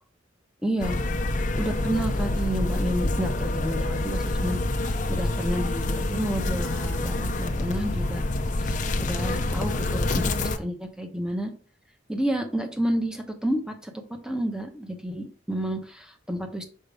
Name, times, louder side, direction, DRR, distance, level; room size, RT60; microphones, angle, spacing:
voice 1, 0.6-1.0 1.6-4.6 5.1-8.2 8.6-11.5 12.1-13.9 14.2-16.6, equal, 5° right, 4 dB, 0.9 m, -30 dB
sound 1, 0.8-10.6, left 2 dB, 40° left, 0.7 m, -27 dB
6.5 x 5.1 x 3.4 m, 0.39 s
head